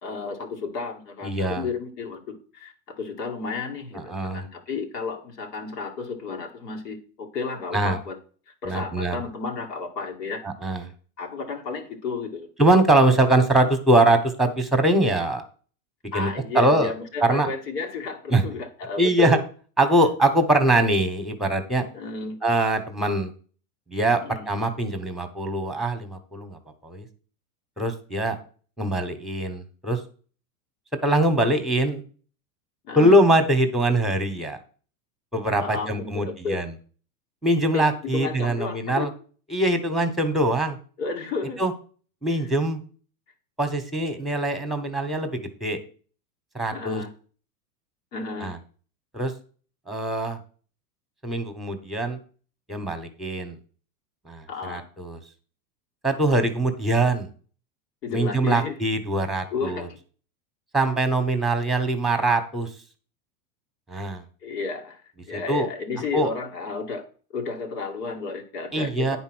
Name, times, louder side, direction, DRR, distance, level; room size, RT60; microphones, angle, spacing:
voice 1, 0.0-8.2 8.6-10.4 10.7-10.8 11.2-12.5 16.1-19.4 21.9-22.4 24.2-24.5 32.9-33.2 35.6-36.6 37.7-39.1 41.0-41.6 42.4-42.5 46.7-47.1 48.1-48.5 54.5-54.9 58.0-58.8 59.5-60.0 64.4-65.0 65.3-67.0 67.3-69.2, left 4 dB, 90° left, 3 dB, 2.3 m, -32 dB
voice 2, 1.2-1.6 3.9-4.4 7.7-8.0 8.6-9.2 10.4-10.9 12.6-15.4 16.1-16.9 17.2-17.5 18.3-18.4 19.0-19.4 19.8-21.8 22.4-23.3 23.9-27.1 27.8-28.4 28.8-30.0 31.0-32.0 32.9-34.6 35.3-36.7 37.4-39.1 39.5-40.8 41.6-41.7 42.2-42.8 43.6-45.3 45.6-45.8 46.5-47.0 48.4-48.6 49.1-49.3 49.9-50.4 51.2-52.2 52.7-53.6 54.2-55.2 56.0-57.3 58.1-59.9 60.7-62.7 63.9-64.2 65.3-65.7 66.1-66.3 68.7-69.2, right 1 dB, ahead, 7 dB, 1.2 m, -22 dB
9.5 x 4.3 x 6.2 m, 0.41 s
supercardioid pair, 130°, 47 cm